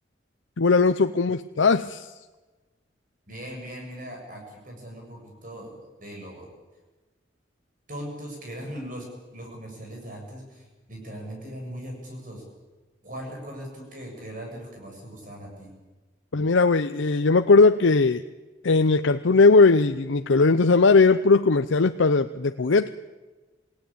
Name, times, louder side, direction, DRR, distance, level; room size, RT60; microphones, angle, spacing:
voice 1, 0.6-2.1 16.3-18.2 18.6-22.9, left 3 dB, 85° left, 9 dB, 0.7 m, -19 dB
voice 2, 3.3-6.5 7.9-9.1 9.3-12.4 13.0-15.7, equal, 45° right, 0 dB, 7.6 m, -39 dB
28.0 x 17.5 x 8.8 m, 1.2 s
head